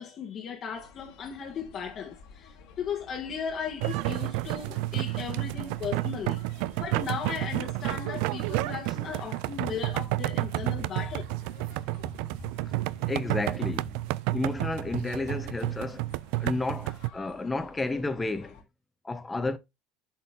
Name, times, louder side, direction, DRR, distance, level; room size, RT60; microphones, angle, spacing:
voice 1, 0.0-11.2, left 7 dB, 45° left, 1.5 m, -36 dB
sound 1, 0.7-18.6, left 5 dB, 65° left, 2.1 m, -53 dB
sound 2, 3.8-17.1, right 19 dB, 65° right, 0.3 m, -31 dB
voice 2, 13.1-14.0 14.3-16.0 16.4-18.6 19.0-19.6, left 2 dB, 15° left, 1.1 m, -31 dB
7.6 x 4.3 x 3.6 m
hypercardioid pair, 85°, 0 cm